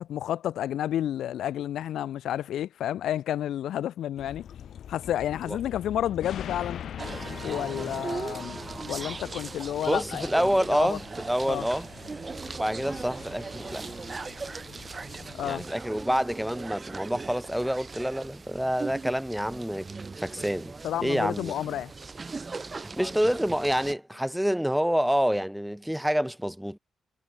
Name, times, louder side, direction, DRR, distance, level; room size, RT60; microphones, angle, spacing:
voice 1, 0.0-4.5 4.9-6.8 7.4-8.6 8.9-10.3 10.7-11.0 11.5-11.7 15.3-15.6 20.8-21.9, left 11 dB, 90° left, 1.2 m, -30 dB
sound 1, 4.2-15.7, left 9 dB, 70° left, 4.3 m, -43 dB
sound 2, 7.0-23.9, right 4 dB, 25° right, 0.7 m, -39 dB
voice 2, 9.9-11.9 12.6-13.8 15.4-19.9 20.2-20.7 21.0-21.5 22.8-26.8, equal, ahead, 2.2 m, -27 dB
cardioid pair, 120°, 0 cm